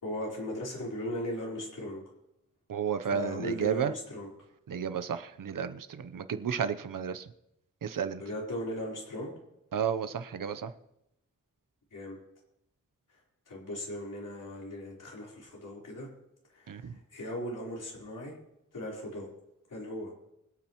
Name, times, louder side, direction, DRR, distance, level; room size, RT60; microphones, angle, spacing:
voice 1, 0.0-2.0 3.1-4.3 7.9-9.3 11.9-12.2 13.1-16.1 16.5-18.4 18.7-19.3 19.7-20.1, left 1 dB, 75° left, -3 dB, 4.2 m, -38 dB
voice 2, 2.7-3.9 4.7-7.3 7.8-8.2 9.7-10.7 16.7-16.9, right 7 dB, 80° right, 11 dB, 0.9 m, -32 dB
25.0 x 8.9 x 3.1 m, 0.82 s
wide cardioid pair, 155°, 32 cm